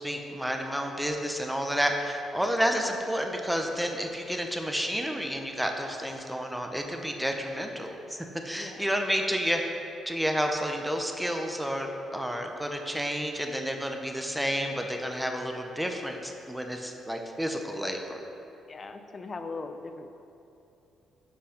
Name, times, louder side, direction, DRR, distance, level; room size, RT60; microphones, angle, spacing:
voice 1, 0.0-9.6 10.1-18.2, equal, 5° right, 3 dB, 0.9 m, -30 dB
voice 2, 8.6-8.9 18.7-20.1, left 3 dB, 35° left, 8 dB, 0.6 m, -39 dB
10.0 x 5.7 x 5.2 m, 2.8 s
cardioid pair, 90°, 0 cm